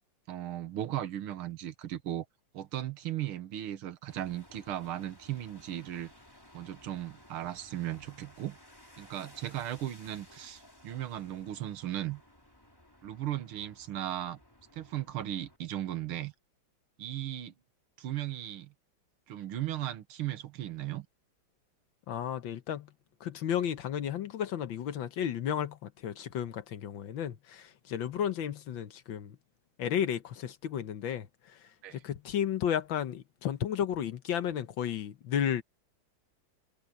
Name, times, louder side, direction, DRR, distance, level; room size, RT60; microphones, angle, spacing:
voice 1, 0.3-2.3 2.5-6.1 6.5-8.6 9.0-12.2 13.0-14.4 14.7-16.3 17.0-17.5 18.0-18.7 19.3-21.1 31.8-32.0, right 12 dB, 85° right, 2.0 m, -36 dB
sound 1, 4.1-15.6, left 1 dB, 10° left, 3.6 m, -57 dB
voice 2, 22.1-22.9 23.2-29.4 29.8-31.6 31.9-35.6, left 9 dB, 70° left, 1.7 m, -33 dB
omnidirectional pair, 2.3 m